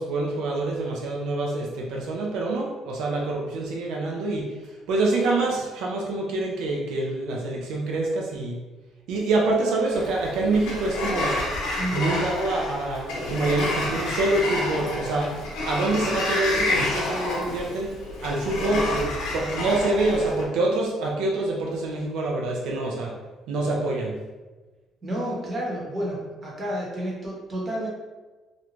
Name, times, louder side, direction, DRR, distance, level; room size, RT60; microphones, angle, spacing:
voice 1, 0.0-4.5 4.9-8.6 9.1-11.4 11.9-18.8 19.3-23.1 23.5-24.2, right 2 dB, 85° right, -2 dB, 0.4 m, -26 dB
Sliding door, 9.9-20.4, left 2 dB, 90° left, 0.7 m, -29 dB
voice 2, 18.7-19.2 25.0-27.9, right 1 dB, 30° right, -4 dB, 0.8 m, -30 dB
2.5 x 2.1 x 3.0 m, 1.2 s
cardioid pair, 125°, 0 cm